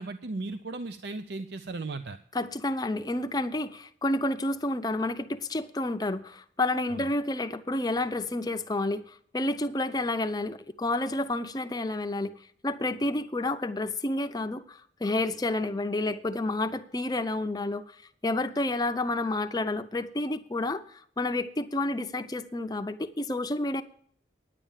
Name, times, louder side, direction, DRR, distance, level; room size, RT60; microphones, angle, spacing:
voice 1, 0.0-2.2 6.9-7.1, right 3 dB, 65° right, 10 dB, 0.5 m, -36 dB
voice 2, 2.3-12.3 12.6-23.8, left 2 dB, 20° left, 8 dB, 0.5 m, -30 dB
10.0 x 8.8 x 7.3 m, 0.62 s
head